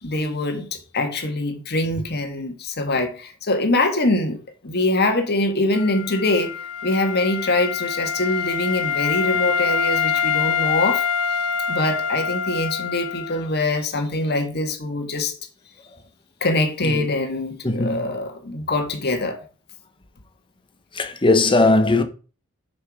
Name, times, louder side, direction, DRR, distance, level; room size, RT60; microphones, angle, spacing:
voice 1, 0.0-6.5 6.8-11.0 11.7-15.3 16.4-19.4, left 2 dB, 50° left, 1.7 m, -23 dB
Wind instrument woodwind instrument, 5.7-13.5, left 6 dB, 75° left, 0.6 m, -25 dB
voice 2, 17.6-18.2 20.9-22.0, left 2 dB, 25° left, 1.1 m, -19 dB
6.6 x 6.0 x 4.9 m
head